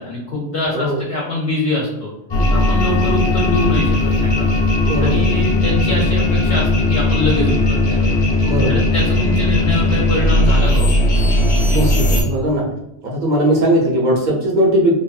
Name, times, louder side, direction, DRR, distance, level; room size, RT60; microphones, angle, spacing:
voice 1, 0.0-2.1 2.5-4.5 5.0-8.2 8.7-10.9, left 1 dB, 65° left, -4 dB, 0.8 m, -23 dB
sound 1, 2.3-12.2, left 2 dB, 35° left, 0.4 m, -16 dB
voice 2, 4.8-5.2 8.4-8.8 11.7-12.6 13.0-14.9, right 1 dB, 50° right, -3 dB, 0.8 m, -18 dB
2.7 x 2.5 x 2.3 m, 0.89 s
omnidirectional pair, 1.1 m